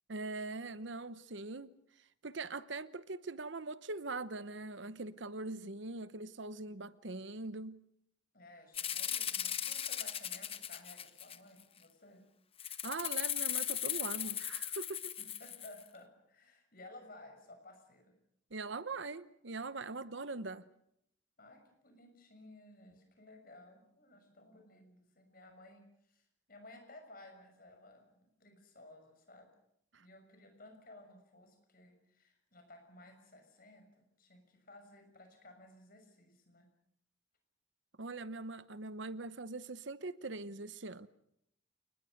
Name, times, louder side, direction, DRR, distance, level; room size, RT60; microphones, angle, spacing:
voice 1, 0.1-1.7 2.2-7.8 12.8-15.1 18.5-20.6 29.9-30.0 38.0-41.1, right 3 dB, 65° right, 0.9 m, -42 dB
voice 2, 8.3-12.3 15.2-18.2 21.4-29.5 29.9-36.7, left 2 dB, 45° left, 6.5 m, -57 dB
Rattle (instrument), 8.7-11.6 12.6-15.8, left 10 dB, 30° left, 1.1 m, -37 dB
29.0 x 20.0 x 6.6 m
head